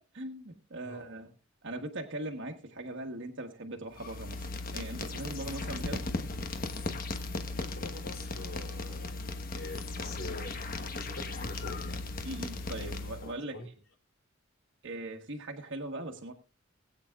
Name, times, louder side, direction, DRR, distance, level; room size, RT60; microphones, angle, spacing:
voice 1, 0.1-1.3 1.6-6.0 12.2-13.7 14.8-16.3, right 1 dB, 65° right, 2 dB, 1.3 m, -40 dB
sound 1, 3.9-13.3, left 3 dB, 45° left, 1.2 m, -37 dB
voice 2, 7.6-12.2 12.7-12.9 13.2-13.7, left 2 dB, 75° left, 1 dB, 3.7 m, -46 dB
20.5 x 8.7 x 2.4 m, 0.34 s
head